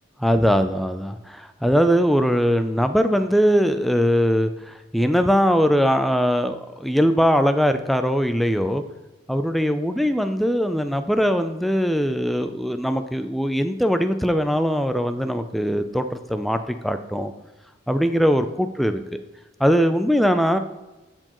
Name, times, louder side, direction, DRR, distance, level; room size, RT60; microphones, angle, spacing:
voice 1, 0.2-8.8 9.3-17.3 17.9-19.0 19.6-20.6, equal, ahead, 8 dB, 0.3 m, -21 dB
13.5 x 4.4 x 3.0 m, 1.0 s
head